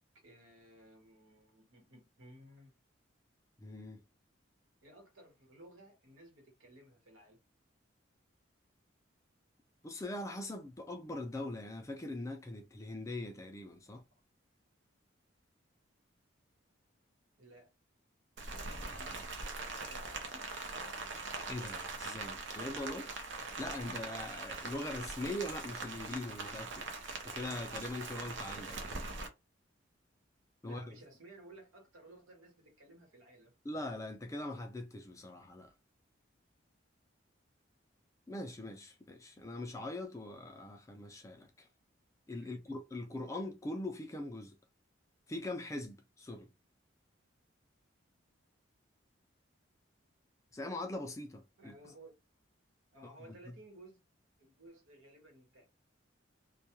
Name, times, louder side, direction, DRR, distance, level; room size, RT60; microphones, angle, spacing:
voice 1, 0.1-2.7 4.8-7.4 13.9-14.0 17.4-17.7 18.5-19.3 19.7-20.5 30.6-33.5 42.4-42.6 51.6-52.1 52.9-54.0 54.4-55.7, right 1 dB, 85° right, 1.1 m, -57 dB
voice 2, 3.6-4.0 9.8-14.0 21.5-23.1 23.6-26.9 27.2-28.8 30.6-30.9 33.6-35.7 38.3-41.7 42.3-44.6 45.3-46.5 50.5-51.7 53.0-53.4, left 1 dB, 15° left, 0.3 m, -42 dB
Rain, 18.4-29.3, right 3 dB, 65° right, 0.6 m, -42 dB
2.2 x 2.2 x 2.9 m
head